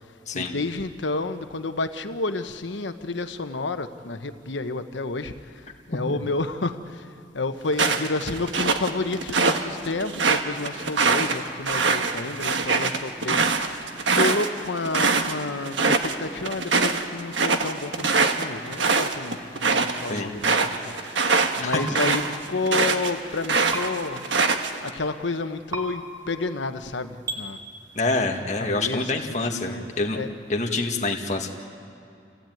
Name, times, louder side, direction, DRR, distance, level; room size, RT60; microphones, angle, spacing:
voice 1, 0.3-5.3 5.9-7.0 7.3-13.9 14.1-24.2 24.8-27.6 28.6-30.3, left 3 dB, 85° left, 9 dB, 1.1 m, -30 dB
sound 1, 7.7-9.6 10.0-15.3 15.6-16.1 16.4-23.1 23.4-24.9, right 4 dB, 85° right, 1.4 m, -23 dB
sound 2, 21.7-21.9 23.7-23.8 25.7-25.8 27.3-27.4, right 2 dB, 20° right, 2.2 m, -29 dB
voice 2, 28.0-30.2 30.5-31.5, left 3 dB, 40° left, 2 dB, 1.8 m, -26 dB
27.5 x 16.0 x 9.2 m, 2.5 s
head